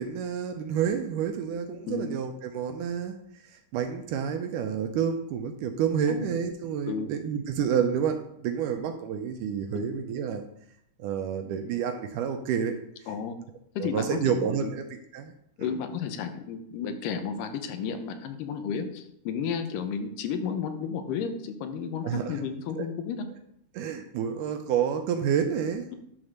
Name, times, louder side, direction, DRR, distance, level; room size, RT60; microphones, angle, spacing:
voice 1, 0.0-3.2 3.4-10.5 11.0-12.8 13.8-15.3 15.6-15.7 22.0-22.4 22.8-22.9 23.7-25.8, right 8 dB, 80° right, 6 dB, 2.1 m, -29 dB
voice 2, 13.1-13.4 13.8-14.7 15.6-23.3, left 6 dB, 80° left, 7 dB, 2.5 m, -32 dB
10.5 x 4.0 x 6.4 m, 0.74 s
omnidirectional pair, 3.9 m